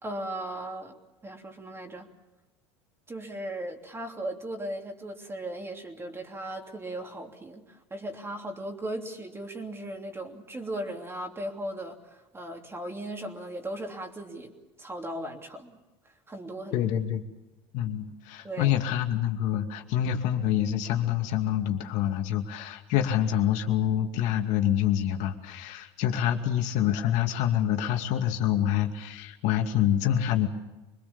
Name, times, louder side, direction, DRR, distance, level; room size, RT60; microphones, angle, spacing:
voice 1, 0.0-1.0 1.2-2.1 3.1-15.8 16.3-16.8 18.4-18.7, right 1 dB, 20° right, 3 dB, 3.1 m, -37 dB
voice 2, 16.7-17.2 17.7-30.5, left 10 dB, 65° left, 5 dB, 2.5 m, -26 dB
25.0 x 21.0 x 7.2 m, 1.1 s
supercardioid pair, 100°, 13 cm